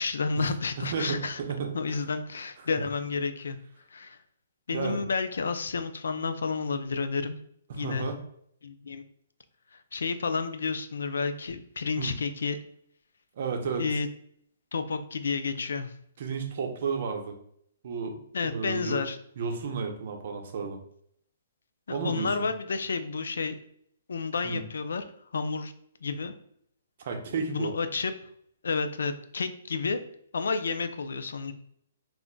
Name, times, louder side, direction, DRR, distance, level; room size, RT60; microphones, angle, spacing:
voice 1, 0.0-1.4 1.7-3.6 3.9-4.2 4.7-7.4 7.7-8.1 8.6-9.0 9.9-12.6 13.8-14.1 14.7-15.9 18.3-19.2 21.9-23.6 24.1-25.0 25.3-25.7 26.0-26.3 27.5-28.1 28.6-30.0 30.3-31.5, left 4 dB, 90° left, 9 dB, 0.3 m, -30 dB
voice 2, 0.8-2.1 2.6-2.7 4.7-5.0 7.7-8.2 12.0-12.1 13.3-13.9 16.2-17.4 17.8-19.0 19.4-20.8 21.9-22.3 24.4-24.6 27.0-27.7, right 5 dB, 50° right, 3 dB, 0.6 m, -32 dB
2.4 x 2.2 x 3.7 m, 0.67 s
hypercardioid pair, 165°, 0 cm